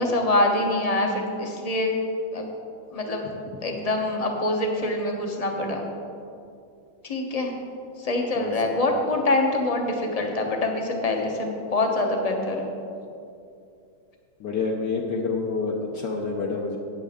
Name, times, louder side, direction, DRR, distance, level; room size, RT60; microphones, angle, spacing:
voice 1, 0.0-2.0 2.3-2.5 2.9-3.2 3.6-5.9 7.0-7.5 8.0-12.7, left 2 dB, 35° left, 2 dB, 0.6 m, -25 dB
voice 2, 14.4-16.8, left 4 dB, 65° left, -1 dB, 1.3 m, -28 dB
13.5 x 9.4 x 3.6 m, 2.5 s
omnidirectional pair, 2.3 m